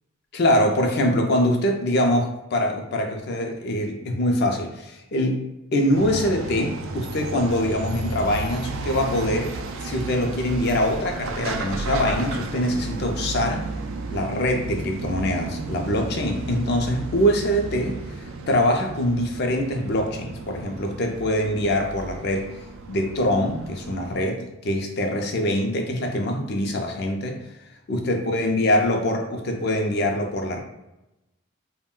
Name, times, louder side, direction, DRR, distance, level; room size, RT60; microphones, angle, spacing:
voice 1, 0.3-5.4 5.7-9.5 9.8-13.7 14.1-22.5 22.9-27.4 27.9-30.6, left 1 dB, 55° left, 2 dB, 0.4 m, -24 dB
sound 1, 5.9-24.2, right 3 dB, 75° right, 0.3 m, -33 dB
2.3 x 2.1 x 3.6 m, 0.92 s
head